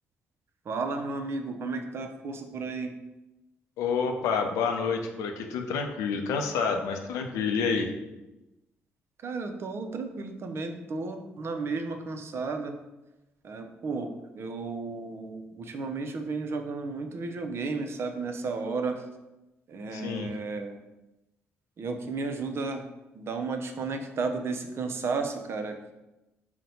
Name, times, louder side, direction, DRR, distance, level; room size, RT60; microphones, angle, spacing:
voice 1, 0.7-2.9 9.2-12.8 13.4-19.0 19.7-20.8 21.8-22.9 23.1-25.9, right 4 dB, 50° right, 6 dB, 0.5 m, -33 dB
voice 2, 3.8-7.9 19.9-20.3, left 5 dB, 80° left, 4 dB, 0.5 m, -28 dB
4.1 x 2.2 x 4.0 m, 1.0 s
supercardioid pair, 60°, 5 cm